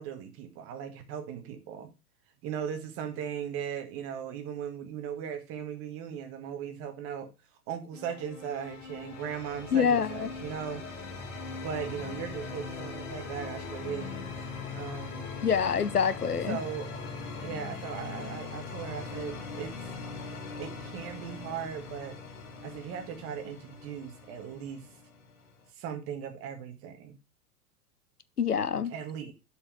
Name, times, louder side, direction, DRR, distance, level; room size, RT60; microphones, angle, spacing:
voice 1, 0.0-1.9 2.4-7.3 7.7-10.8 11.6-14.3 14.7-15.3 16.4-17.1 17.4-19.9 20.6-22.2 22.6-24.9 25.7-27.2 28.9-29.3, right 8 dB, 30° right, 1.5 m, -38 dB
sound 1, 7.9-25.7, left 4 dB, 55° left, 2.3 m, -41 dB
voice 2, 9.7-10.3 15.4-16.6 28.4-28.9, left 7 dB, 85° left, 0.7 m, -26 dB
7.2 x 4.7 x 5.6 m
figure-of-eight pair, 100°, 45 cm